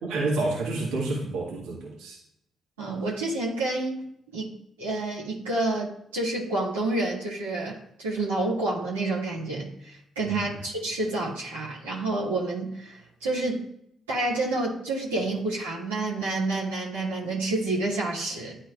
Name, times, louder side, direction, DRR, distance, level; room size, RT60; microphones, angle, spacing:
voice 1, 0.0-2.2 10.3-10.6, right 2 dB, 70° right, -4 dB, 1.6 m, -29 dB
voice 2, 2.8-4.5 4.8-13.6 14.1-18.6, right 2 dB, 85° right, -7 dB, 1.7 m, -29 dB
10.5 x 4.1 x 2.4 m, 0.73 s
figure-of-eight pair, 40°, 0 cm